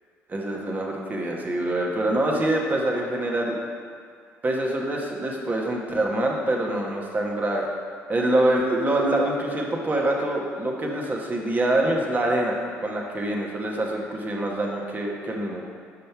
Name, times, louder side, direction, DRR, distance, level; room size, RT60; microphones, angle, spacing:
voice 1, 0.3-3.6 4.4-7.7 8.1-15.7, right 1 dB, 30° right, 0 dB, 1.2 m, -25 dB
5.6 x 5.1 x 4.6 m, 2.2 s
supercardioid pair, 75°, 6 cm